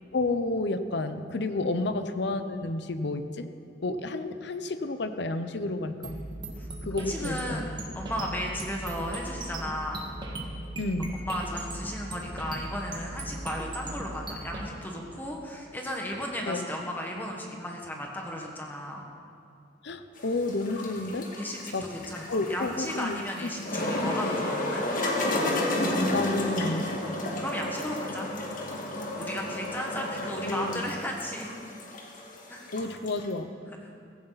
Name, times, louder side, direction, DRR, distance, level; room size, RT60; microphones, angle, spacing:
voice 1, 0.1-3.5 3.8-6.2 6.8-7.6 10.8-11.2 16.5-16.7 19.8-21.3 21.7-21.9 22.3-23.2 23.5-23.6 26.1-27.0 30.4-30.8 32.7-33.5, left 2 dB, 65° left, 9 dB, 0.8 m, -30 dB
sound 1, 6.0-14.7, right 1 dB, 25° right, 1.8 m, -38 dB
voice 2, 7.0-10.1 11.1-19.0 21.4-24.9 27.4-28.3 29.2-31.7 32.5-32.7 33.8-33.9, equal, 10° left, 0 dB, 1.6 m, -35 dB
sound 2, 20.2-33.3, left 1 dB, 50° left, 1.9 m, -31 dB
16.0 x 16.0 x 4.1 m, 2.6 s
head